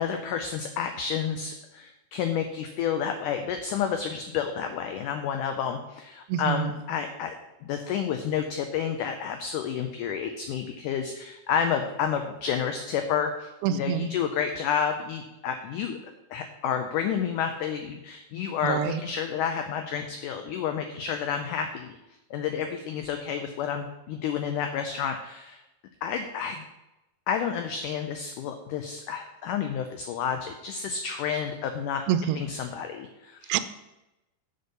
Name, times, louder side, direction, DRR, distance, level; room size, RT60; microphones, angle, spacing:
voice 1, 0.0-7.4 7.6-16.0 16.3-22.0 22.3-25.6 26.0-26.6 27.3-32.0 32.4-33.6, left 7 dB, 90° left, 6 dB, 1.8 m, -30 dB
voice 2, 6.3-6.8 13.6-14.1 18.6-19.0 32.1-32.4 33.5-33.6, right 10 dB, 85° right, 12 dB, 2.3 m, -26 dB
8.1 x 5.3 x 6.6 m, 0.96 s
omnidirectional pair, 4.4 m